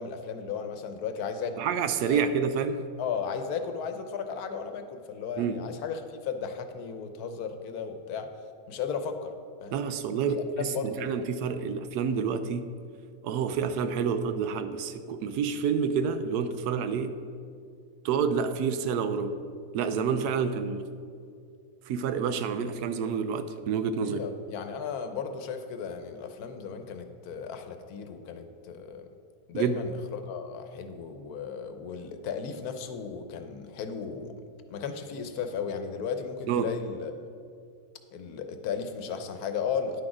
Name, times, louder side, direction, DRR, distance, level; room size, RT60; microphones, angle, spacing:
voice 1, 0.0-1.6 2.1-2.2 3.0-8.3 8.7-9.3 9.6-9.8 10.3-11.1 24.0-29.1 29.5-34.4 34.7-37.1 38.1-40.0, left 6 dB, 75° left, 8 dB, 1.2 m, -35 dB
voice 2, 1.6-2.8 5.4-5.6 9.7-12.7 13.2-17.2 18.0-19.4 19.7-20.8 21.9-24.2 29.5-29.8 36.5-36.7, right 6 dB, 90° right, 10 dB, 1.2 m, -28 dB
10.5 x 6.2 x 4.9 m, 2.4 s
omnidirectional pair, 1.6 m